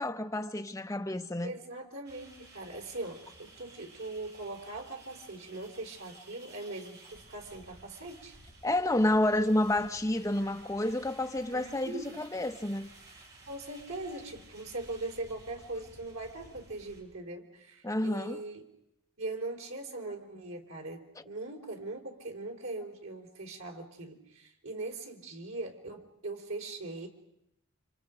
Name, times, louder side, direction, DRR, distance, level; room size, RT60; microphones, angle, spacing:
voice 1, 0.0-1.5 8.6-12.9 17.8-18.4, left 1 dB, 15° left, 0.9 m, -29 dB
voice 2, 1.4-8.4 11.5-12.2 13.5-18.6 19.2-27.1, right 2 dB, 80° right, 4.0 m, -41 dB
sound 1, 2.0-17.0, right 2 dB, 50° right, 7.1 m, -55 dB
30.0 x 26.0 x 5.1 m
head